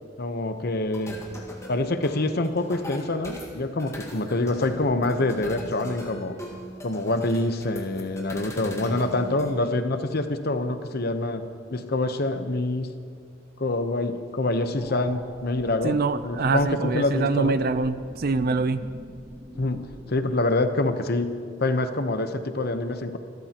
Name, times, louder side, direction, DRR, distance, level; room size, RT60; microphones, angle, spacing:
voice 1, 0.2-1.2 1.7-6.4 6.8-11.4 11.7-12.9 13.6-17.6 19.6-19.8 20.1-21.3 21.6-23.2, left 2 dB, 55° left, 8 dB, 0.9 m, -26 dB
sound 1, 0.9-9.5, equal, 15° left, 1.7 m, -40 dB
sound 2, 14.8-20.4, equal, 20° right, 1.3 m, -45 dB
voice 2, 15.8-18.8, right 3 dB, 50° right, 12 dB, 0.5 m, -25 dB
26.5 x 13.5 x 3.0 m, 2.2 s
head